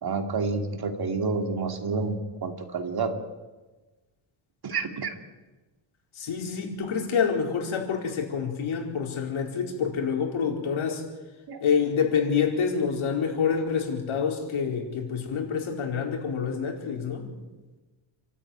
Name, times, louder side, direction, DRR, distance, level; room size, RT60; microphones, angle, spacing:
voice 1, 0.0-3.1 4.6-5.1 11.5-11.6, right 4 dB, 50° right, 5 dB, 2.8 m, -29 dB
voice 2, 6.1-11.0 11.6-17.3, left 6 dB, 75° left, 1 dB, 4.6 m, -27 dB
28.5 x 13.5 x 9.3 m, 1.2 s
wide cardioid pair, 125°, 49 cm